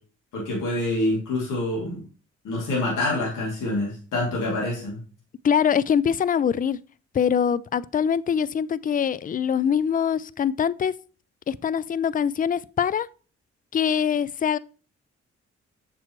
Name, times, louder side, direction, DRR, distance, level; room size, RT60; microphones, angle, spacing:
voice 1, 0.3-2.0 2.4-5.0, left 1 dB, 75° left, 2.7 m, -26 dB
voice 2, 5.4-6.8 7.1-10.9 11.5-13.1 13.7-14.6, left 8 dB, 30° left, 0.4 m, -23 dB
7.1 x 6.1 x 3.1 m
hypercardioid pair, 45°, 31 cm